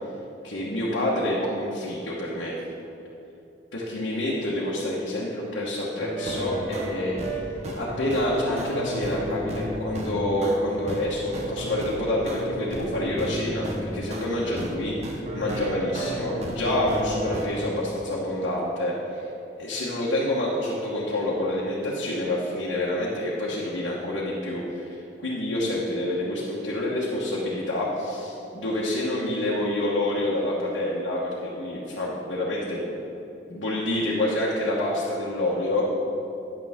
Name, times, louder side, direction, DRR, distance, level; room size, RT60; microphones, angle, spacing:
voice 1, 0.4-2.6 3.7-14.9 15.3-19.3 19.6-32.9 33.5-35.9, left 1 dB, 80° left, -6 dB, 1.3 m, -27 dB
sound 1, 6.0-11.1 11.3-14.7 15.0-17.4, right 1 dB, 35° right, 0.9 m, -33 dB
10.5 x 8.9 x 3.6 m, 2.9 s
head